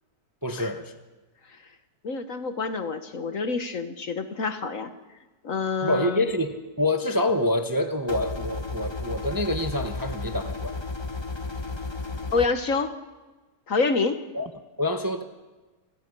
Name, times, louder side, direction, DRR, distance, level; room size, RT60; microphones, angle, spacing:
voice 1, 0.4-0.9 5.8-10.8 14.3-14.5 14.8-15.2, left 1 dB, 15° right, 6 dB, 1.0 m, -26 dB
voice 2, 2.0-4.9 5.4-6.2 12.3-13.0 13.7-14.2, left 4 dB, 50° left, 9 dB, 1.5 m, -27 dB
sound 1, 8.1-12.5, left 3 dB, 20° left, 0.9 m, -33 dB
29.0 x 26.0 x 5.5 m, 1.2 s
omnidirectional pair, 1.8 m